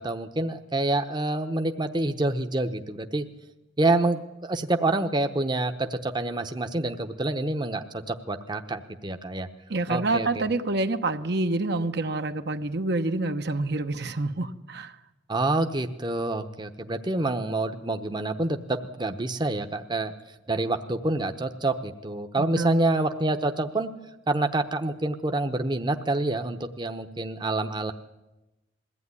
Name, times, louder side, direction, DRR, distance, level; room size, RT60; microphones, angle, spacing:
voice 1, 0.0-3.2 3.8-9.5 9.9-10.5 15.3-20.1 20.5-23.9 24.3-27.9, right 2 dB, 25° right, 6 dB, 0.9 m, -27 dB
voice 2, 9.7-14.9 22.4-22.8, right 2 dB, 65° right, 7 dB, 1.1 m, -27 dB
21.5 x 15.5 x 9.7 m, 1.0 s
head